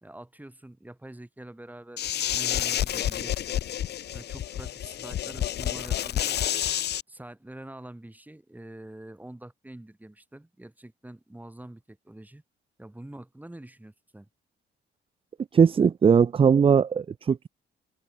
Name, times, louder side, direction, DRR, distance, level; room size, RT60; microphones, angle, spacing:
voice 1, 0.0-3.6 4.1-6.8 7.1-12.4 12.8-14.3, right 1 dB, 10° right, 3.9 m, -45 dB
sound 1, 2.0-7.0, left 11 dB, 55° left, 0.6 m, -29 dB
voice 2, 15.5-17.5, right 6 dB, 30° right, 0.4 m, -20 dB
cardioid pair, 90°, 20 cm